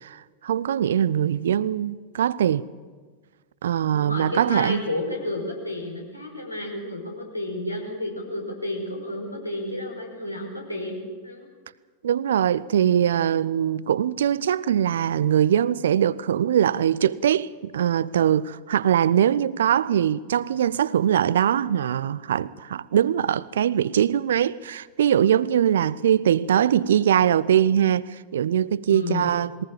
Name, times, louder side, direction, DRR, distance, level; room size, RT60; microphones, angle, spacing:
voice 1, 0.0-2.7 3.6-4.8 12.0-29.6, right 9 dB, 60° right, 0.6 m, -22 dB
voice 2, 3.9-11.0 11.2-11.5 28.9-29.3, left 1 dB, 85° left, 5.1 m, -31 dB
21.5 x 19.0 x 7.4 m
figure-of-eight pair, 90°, 0 cm